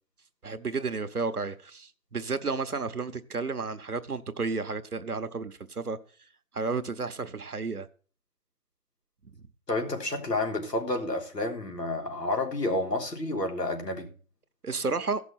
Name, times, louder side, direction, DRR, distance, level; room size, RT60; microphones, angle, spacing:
voice 1, 0.4-6.0 6.5-7.9 14.6-15.2, right 4 dB, 65° right, 1.2 m, -32 dB
voice 2, 9.7-14.1, left 2 dB, 85° left, 3.7 m, -30 dB
15.5 x 6.1 x 5.8 m
figure-of-eight pair, 180°, 48 cm